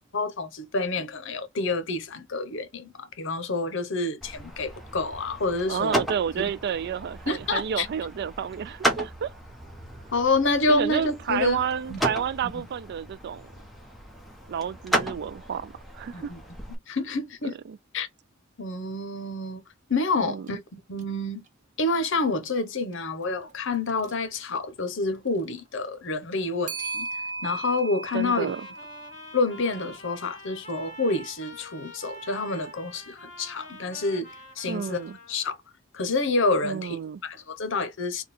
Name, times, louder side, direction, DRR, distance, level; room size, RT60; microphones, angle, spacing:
voice 1, 0.1-6.0 7.3-7.9 10.1-11.6 11.9-12.0 12.4-12.6 16.1-16.4 16.7-17.6 17.9-18.1 18.6-19.6 19.9-21.4 21.8-27.1 27.4-28.5 29.3-35.0 35.3-35.6 35.9-38.2, left 3 dB, 65° left, 0.9 m, -28 dB
sound 1, 4.2-16.7, equal, ahead, 1.0 m, -34 dB
voice 2, 5.7-9.3 10.7-13.5 14.5-16.3 17.7-17.8 20.2-20.5 28.1-28.7 34.7-35.2 36.6-37.2, right 8 dB, 55° right, 0.3 m, -30 dB
Clock, 20.5-20.6 21.0-21.1 23.9-24.1 26.7-30.9, right 3 dB, 35° right, 0.8 m, -38 dB
Trumpet, 28.1-35.6, equal, 40° left, 1.4 m, -46 dB
3.6 x 2.3 x 4.2 m
head